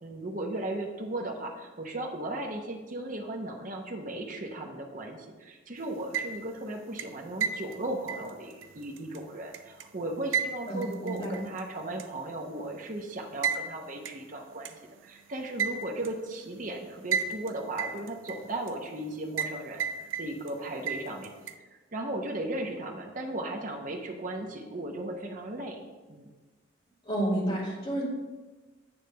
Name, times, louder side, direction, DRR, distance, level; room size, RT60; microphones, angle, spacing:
voice 1, 0.0-19.9 20.2-21.3 21.9-25.8 26.1-26.3, right 1 dB, 40° right, 1 dB, 0.9 m, -36 dB
sound 1, 5.9-6.6 7.0-9.8 10.3-11.6 12.0-12.1 13.4-13.6 14.0-14.1 14.6-14.7 15.6-16.1 17.1-17.5 17.8-18.7 19.4-19.5 19.8-20.5 20.9-21.5, right 7 dB, 80° right, 0.5 m, -32 dB
voice 2, 10.7-11.3 27.0-28.1, right 1 dB, 30° left, -5 dB, 2.4 m, -30 dB
8.7 x 3.3 x 6.6 m, 1.3 s
head